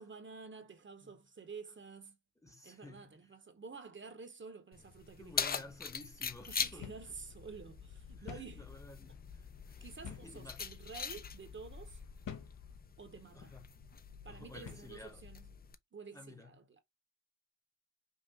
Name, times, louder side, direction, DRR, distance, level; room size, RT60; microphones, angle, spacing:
voice 1, 0.0-2.2 2.6-5.4 6.5-8.7 9.8-12.0 13.0-13.5 14.2-15.5 15.9-16.6, right 5 dB, 40° right, 0.8 m, -50 dB
voice 2, 2.4-3.1 5.2-6.9 8.2-9.8 10.2-10.7 13.3-13.7 14.3-15.3 16.1-16.5, left 2 dB, 10° left, 0.7 m, -53 dB
Keys jangling, 4.7-15.7, left 6 dB, 30° left, 0.4 m, -43 dB
sound 1, 6.3-12.8, left 6 dB, 50° left, 0.9 m, -55 dB
sound 2, 6.8-7.1 7.4-7.5 8.3-8.6 10.0-10.4 11.1-11.3 12.3-12.6 13.3-13.6 14.6-15.0, left 8 dB, 85° left, 0.8 m, -47 dB
5.4 x 2.3 x 2.7 m
wide cardioid pair, 125°, 32 cm